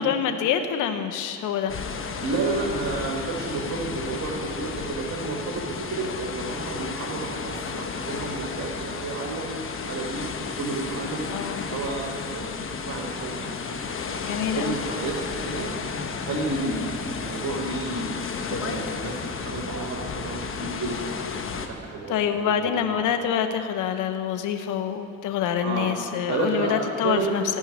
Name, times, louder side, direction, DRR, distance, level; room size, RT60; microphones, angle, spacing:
voice 1, 0.0-1.7 11.3-11.7 14.2-14.8 22.1-27.4, left 8 dB, 85° left, 8 dB, 0.8 m, -26 dB
sound 1, 1.7-21.7, left 5 dB, 45° left, 1.1 m, -33 dB
voice 2, 2.2-10.2 10.6-12.5 12.8-13.8 14.3-15.7 16.1-18.1 18.5-21.1 21.7-23.2 25.6-25.9 26.3-26.8 27.0-27.3, right 3 dB, 65° right, -1 dB, 1.9 m, -31 dB
15.5 x 5.7 x 9.5 m, 2.5 s
cardioid pair, 90°, 30 cm